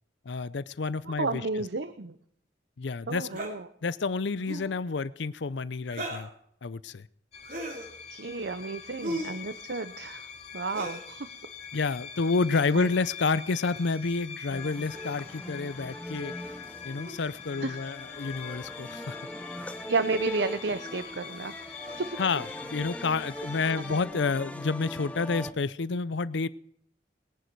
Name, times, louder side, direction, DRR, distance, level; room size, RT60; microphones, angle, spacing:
voice 1, 0.3-1.6 2.8-3.3 3.8-6.3 6.6-7.1 11.7-16.3 16.8-19.2 22.2-26.5, left 4 dB, 75° left, 17 dB, 0.6 m, -29 dB
voice 2, 1.2-2.1 3.1-3.6 8.1-10.3 10.5-11.3 12.7-12.9 17.6-17.8 19.9-21.5 22.0-22.2, right 3 dB, 65° right, 11 dB, 0.7 m, -32 dB
sound 1, 3.3-3.5 4.4-4.7 5.9-6.3 7.4-7.9 9.0-9.4 10.7-11.1 12.4-12.6 13.7-13.9 14.9-15.4 17.0-17.2 18.2-18.4 19.0-19.3 20.1-20.3 21.8-22.2, right 1 dB, 45° right, 3.0 m, -38 dB
sound 2, 7.3-24.0, left 7 dB, 35° left, 2.5 m, -44 dB
sound 3, 14.5-25.5, left 1 dB, 5° left, 0.7 m, -41 dB
21.0 x 11.0 x 4.7 m, 0.66 s
head